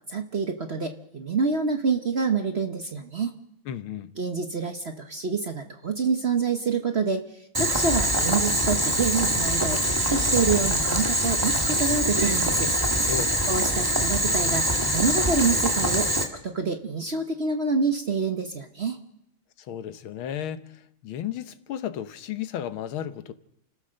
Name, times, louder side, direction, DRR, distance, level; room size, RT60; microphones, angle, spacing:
voice 1, 0.1-3.3 4.2-7.2 7.6-12.7 13.5-19.0, right 5 dB, 40° right, 1.0 m, -27 dB
voice 2, 3.7-4.1 13.1-13.4 19.7-20.6 21.0-23.3, left 10 dB, 80° left, 1.8 m, -33 dB
Boiling, 7.5-16.2, right 1 dB, 10° right, 1.8 m, -24 dB
29.5 x 14.5 x 6.5 m
omnidirectional pair, 2.2 m